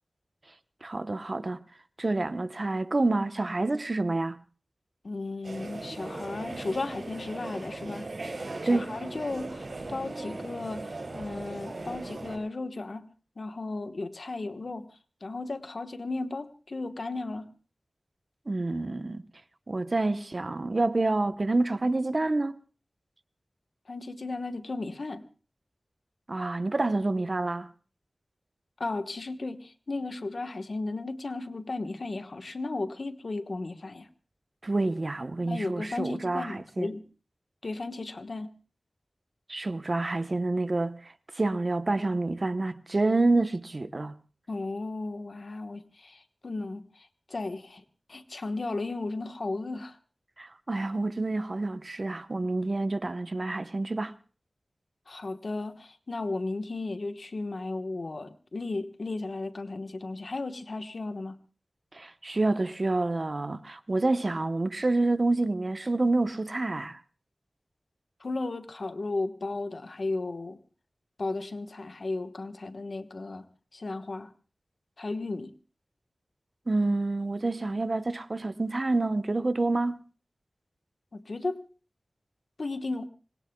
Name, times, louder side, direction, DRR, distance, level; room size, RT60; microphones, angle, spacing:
voice 1, 0.8-1.6 2.0-4.4 8.7-8.9 18.5-19.2 19.7-22.6 26.3-27.7 34.6-36.9 39.5-44.2 50.4-54.1 61.9-67.0 76.7-80.0, right 2 dB, 50° right, 0.9 m, -28 dB
voice 2, 5.0-8.1 8.7-13.1 13.4-14.9 15.2-17.5 23.9-25.2 28.8-34.1 35.4-37.1 37.6-38.5 44.5-47.8 48.1-50.0 55.1-61.4 68.2-70.6 71.2-73.5 73.7-74.3 75.0-75.5 81.1-81.7 82.6-83.1, left 3 dB, 70° left, 1.2 m, -35 dB
sound 1, 5.4-12.4, right 2 dB, 70° right, 7.4 m, -38 dB
26.0 x 21.0 x 2.3 m
wide cardioid pair, 60°, 0 cm